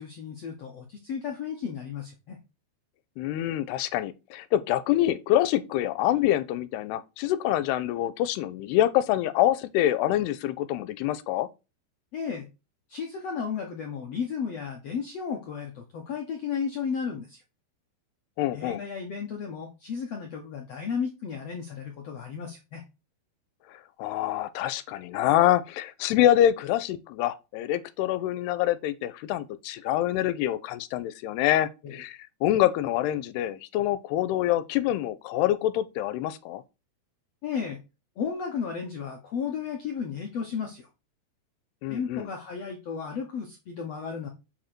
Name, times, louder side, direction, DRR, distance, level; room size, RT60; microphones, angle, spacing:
voice 1, 0.0-2.4 12.1-12.5 12.9-17.4 18.5-22.8 31.8-32.0 37.4-37.8 38.2-40.9 41.9-44.3, left 6 dB, 65° left, 1.6 m, -34 dB
voice 2, 3.2-11.5 18.4-18.8 24.0-36.6 41.8-42.3, left 13 dB, 85° left, 2.7 m, -26 dB
7.6 x 5.0 x 6.0 m
omnidirectional pair, 4.8 m